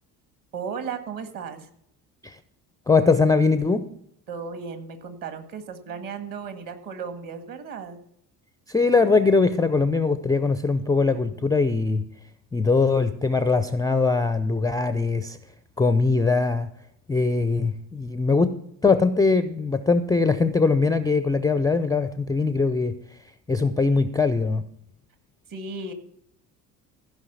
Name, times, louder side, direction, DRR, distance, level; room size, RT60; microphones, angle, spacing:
voice 1, 0.5-1.7 4.3-8.0 25.5-25.9, right 5 dB, 40° right, 8 dB, 1.9 m, -35 dB
voice 2, 2.9-3.9 8.7-12.1 12.5-15.4 15.8-16.7 17.1-18.5 18.8-23.2 23.5-24.6, left 4 dB, 10° left, 12 dB, 0.5 m, -21 dB
15.0 x 5.5 x 6.9 m, 0.73 s
figure-of-eight pair, 55°, 48 cm